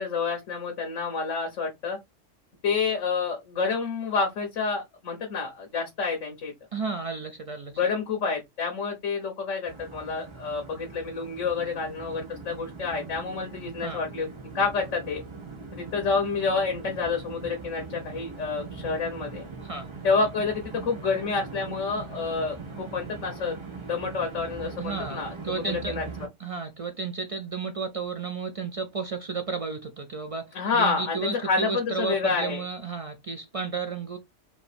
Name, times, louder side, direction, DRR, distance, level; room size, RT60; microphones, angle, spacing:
voice 1, 0.0-2.0 2.6-6.5 7.7-14.3 14.5-15.2 15.7-19.4 20.0-23.6 23.9-26.0 30.5-32.6, left 4 dB, 80° left, 1.5 m, -28 dB
voice 2, 6.7-7.8 13.8-14.0 19.6-19.9 24.8-25.9 26.4-34.2, right 4 dB, 55° right, 0.3 m, -33 dB
sound 1, 9.6-26.3, right 4 dB, 25° right, 0.8 m, -41 dB
4.3 x 2.8 x 3.4 m
omnidirectional pair, 1.3 m